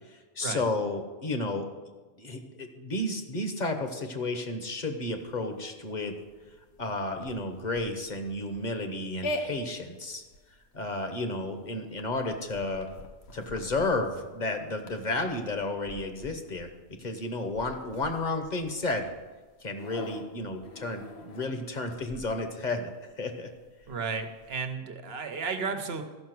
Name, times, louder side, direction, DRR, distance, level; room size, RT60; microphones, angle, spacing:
voice 1, 0.1-1.6 2.2-6.1 6.8-10.2 10.7-12.9 13.3-16.7 17.0-19.1 19.6-22.9 23.2-23.5, left 2 dB, 45° left, 5 dB, 1.1 m, -32 dB
sound 1, 5.1-24.6, left 1 dB, 80° left, 1.1 m, -45 dB
voice 2, 23.9-26.0, right 5 dB, 70° right, 7 dB, 1.1 m, -33 dB
13.0 x 5.8 x 6.0 m, 1.3 s
omnidirectional pair, 1.1 m